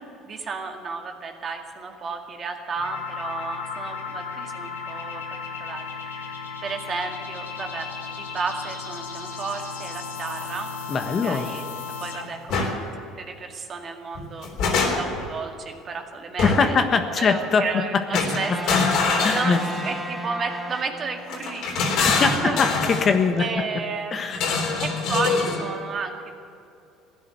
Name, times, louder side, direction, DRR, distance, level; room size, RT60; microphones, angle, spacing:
voice 1, 0.3-6.3 6.6-7.9 8.2-10.7 11.2-11.6 12.0-12.7 13.2-16.8 17.2-18.9 19.3-22.9 23.3-26.5, right 4 dB, 40° right, 4 dB, 2.0 m, -33 dB
sound 1, 2.8-12.5, left 5 dB, 85° left, 1.6 m, -35 dB
voice 2, 10.9-11.5 16.4-17.6 19.2-19.6 22.0-22.7 23.0-23.6 24.1-24.4, left 5 dB, 40° left, 7 dB, 1.3 m, -22 dB
sound 2, 12.5-12.7 14.2-15.3 16.4-16.8 18.1-20.0 21.3-23.1 24.3-25.7, left 4 dB, 60° left, 3.4 m, -24 dB
sound 3, 18.4-21.7, right 1 dB, 10° right, 2.8 m, -34 dB
16.0 x 10.0 x 9.0 m, 2.6 s
hypercardioid pair, 70°, 0 cm